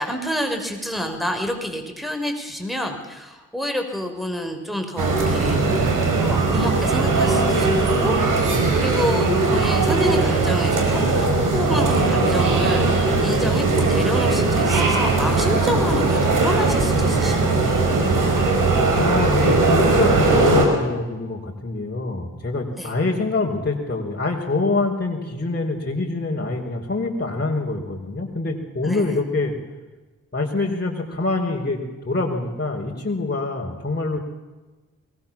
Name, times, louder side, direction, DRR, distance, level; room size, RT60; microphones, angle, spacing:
voice 1, 0.0-8.5 8.7-17.7 22.8-22.9 28.8-29.2, equal, ahead, 5 dB, 6.2 m, -28 dB
sound 1, 5.0-20.7, right 3 dB, 75° right, 5.1 m, -19 dB
voice 2, 19.0-29.5 30.3-34.2, left 3 dB, 30° left, -3 dB, 4.8 m, -25 dB
23.5 x 21.0 x 7.5 m, 1.2 s
supercardioid pair, 40°, 32 cm